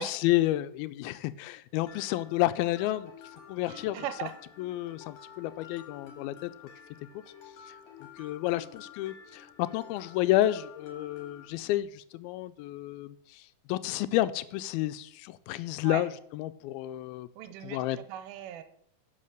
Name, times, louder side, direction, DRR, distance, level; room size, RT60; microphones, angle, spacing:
voice 1, 0.0-3.1 3.5-4.0 4.6-6.5 7.1-7.2 8.2-13.4 13.7-17.3 17.6-18.0, left 15 dB, 85° left, 2.4 m, -30 dB
Mallet percussion, 1.9-11.5, left 8 dB, 55° left, 3.0 m, -50 dB
voice 2, 3.7-4.3 15.8-16.1 17.4-18.6, right 10 dB, 80° right, 2.7 m, -39 dB
11.0 x 5.7 x 6.5 m
omnidirectional pair, 4.3 m